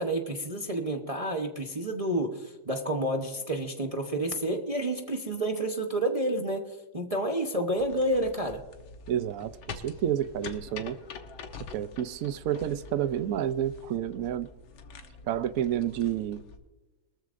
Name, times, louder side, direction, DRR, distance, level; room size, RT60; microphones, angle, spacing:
voice 1, 0.0-8.6, right 1 dB, 30° right, 0.6 m, -30 dB
sound 1, 7.8-16.6, left 5 dB, 90° left, 1.9 m, -45 dB
voice 2, 9.1-11.0 11.7-14.5 15.3-16.4, right 10 dB, 85° right, 0.7 m, -30 dB
22.5 x 14.0 x 2.6 m
omnidirectional pair, 2.1 m